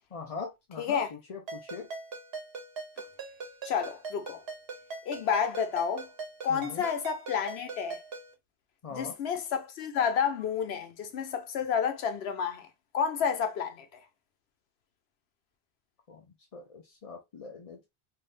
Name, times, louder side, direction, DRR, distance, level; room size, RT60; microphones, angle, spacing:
voice 1, 0.1-1.9 6.5-6.8 8.8-9.2 16.1-16.2 16.5-17.9, left 4 dB, 45° left, 0.5 m, -42 dB
voice 2, 0.8-1.1 3.6-4.4 5.1-6.1 6.4-8.0 8.9-12.7 12.9-14.0, left 7 dB, 75° left, 1.0 m, -30 dB
Ringtone, 1.5-8.3, right 4 dB, 65° right, 1.0 m, -42 dB
3.4 x 2.7 x 2.4 m
omnidirectional pair, 1.1 m